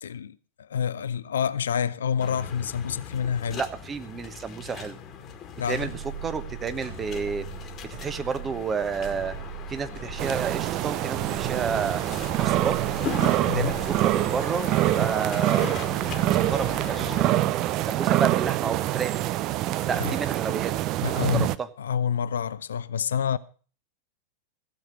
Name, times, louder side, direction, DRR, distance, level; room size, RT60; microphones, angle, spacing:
voice 1, 0.0-3.6 5.6-5.9 13.5-13.7 20.0-20.2 21.0-21.5 21.8-23.4, left 7 dB, 65° left, 0.5 m, -28 dB
sound 1, 2.2-17.2, left 7 dB, 30° left, 1.7 m, -39 dB
voice 2, 3.5-5.0 5.7-7.4 8.0-9.3 9.7-12.0 12.4-12.8 13.5-15.8 16.3-17.5 17.8-19.2 19.8-20.7 21.1-21.7, right 6 dB, 20° right, 1.1 m, -31 dB
sound 2, 5.6-15.1, right 10 dB, 55° right, 4.0 m, -40 dB
sound 3, 10.2-21.5, right 15 dB, 40° right, 0.5 m, -25 dB
16.0 x 7.5 x 6.6 m
figure-of-eight pair, 90°, 0 cm